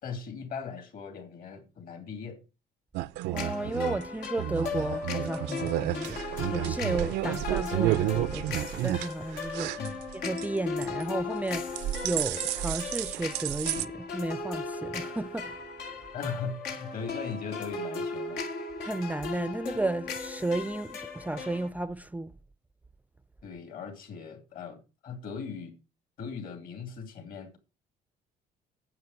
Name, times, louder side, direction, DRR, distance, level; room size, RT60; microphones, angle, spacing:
voice 1, 0.0-2.4 9.8-10.0 16.1-18.4 23.4-25.7 26.2-27.6, left 5 dB, 55° left, 2.8 m, -39 dB
sound 1, 2.9-10.5 10.8-11.2 11.5-13.9, right 15 dB, 90° right, 0.5 m, -31 dB
sound 2, 3.3-21.7, left 4 dB, 90° left, 1.9 m, -37 dB
voice 2, 3.3-9.7 10.1-11.6 12.0-15.6 18.8-22.3, right 2 dB, 10° right, 0.4 m, -33 dB
9.6 x 7.7 x 5.3 m
cardioid pair, 110°, 17 cm